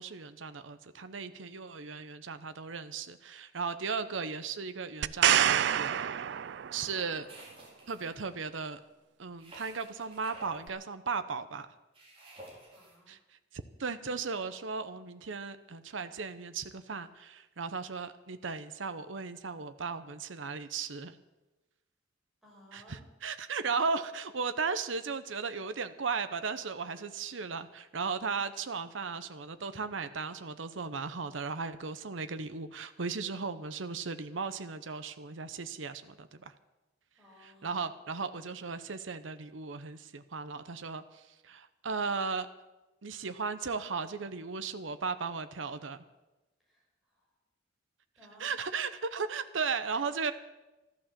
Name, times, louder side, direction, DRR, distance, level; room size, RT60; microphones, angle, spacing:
voice 1, 0.0-5.9 6.7-7.3 7.9-8.8 9.2-11.7 13.1-21.2 22.7-36.5 37.4-42.5 43.0-46.0 48.4-50.3, right 5 dB, 85° right, 11 dB, 0.8 m, -36 dB
sound 1, 5.0-7.0 10.7-10.8, right 10 dB, 65° right, 0.4 m, -27 dB
sound 2, 7.3-8.2 9.4-10.7 11.9-13.0, right 1 dB, 30° right, 4.5 m, -51 dB
voice 2, 12.7-13.2 22.4-23.1 37.2-37.8 46.7-46.8 47.1-47.3 48.2-48.5 49.9-50.0, equal, ahead, -4 dB, 6.0 m, -58 dB
14.0 x 11.5 x 7.5 m, 1.1 s
head